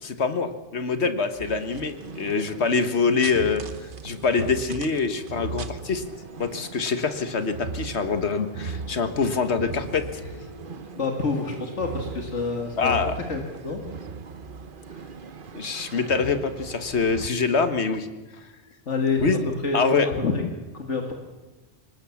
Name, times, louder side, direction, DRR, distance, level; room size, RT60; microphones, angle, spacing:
voice 1, 0.0-3.6 4.0-6.0 6.4-10.1 12.8-13.1 15.5-18.1 19.2-19.4 19.7-20.1, left 5 dB, 70° left, 9 dB, 1.7 m, -24 dB
sound 1, 1.4-17.3, right 5 dB, 50° right, 1.1 m, -38 dB
sound 2, 6.0-12.4, right 3 dB, 75° right, 4.4 m, -48 dB
voice 2, 10.7-13.0 13.3-13.8 14.9-15.1 18.9-20.4 20.7-21.1, left 4 dB, 85° left, 3 dB, 2.4 m, -28 dB
24.5 x 19.5 x 7.2 m, 1.2 s
omnidirectional pair, 1.2 m